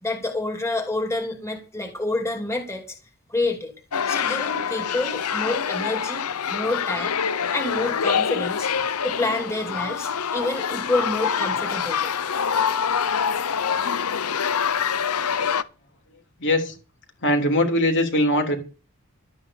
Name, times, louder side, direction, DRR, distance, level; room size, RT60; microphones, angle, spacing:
voice 1, 0.0-2.8 3.3-3.7 4.1-7.2 7.5-8.7 9.0-12.1, left 2 dB, 15° left, 2 dB, 3.0 m, -28 dB
sound 1, 3.9-15.6, left 7 dB, 90° left, 0.8 m, -25 dB
voice 2, 16.4-16.8 17.2-18.6, left 1 dB, 55° left, 4 dB, 3.5 m, -21 dB
12.5 x 9.5 x 6.7 m, 0.34 s
head